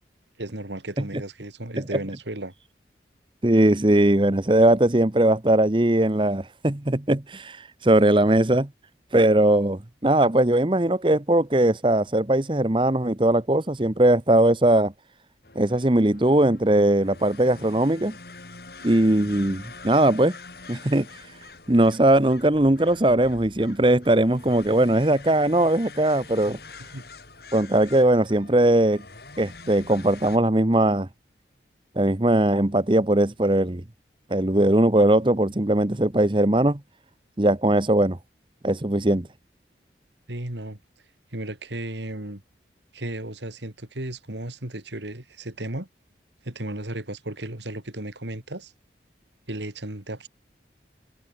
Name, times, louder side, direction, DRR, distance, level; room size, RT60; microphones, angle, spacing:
voice 1, 0.4-2.5 26.5-26.6 26.9-27.0 40.3-40.8 41.3-42.4 42.9-45.9 46.4-48.7 49.5-50.3, right 1 dB, 80° right, 2.9 m, -34 dB
voice 2, 3.4-8.7 9.1-14.9 15.5-18.1 18.8-20.3 20.7-21.1 21.7-26.6 27.5-29.0 29.4-31.1 32.0-33.8 34.3-36.8 37.4-38.2 38.6-39.3, right 1 dB, 25° right, 1.1 m, -20 dB
sound 1, 15.4-30.4, left 3 dB, 60° left, 3.2 m, -45 dB
head